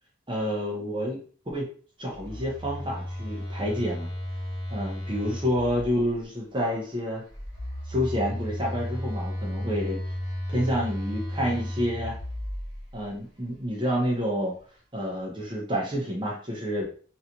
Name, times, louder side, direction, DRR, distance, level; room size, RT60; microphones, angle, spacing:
voice 1, 0.3-1.2 1.5-1.7 2.0-4.1 4.7-7.2 7.9-10.0 10.5-12.2 12.9-14.5 14.9-16.8, equal, 25° right, -2 dB, 1.0 m, -28 dB
Telephone, 2.1-6.1 7.3-13.0, left 1 dB, 15° left, 1.5 m, -34 dB
3.2 x 2.9 x 2.7 m, 0.41 s
head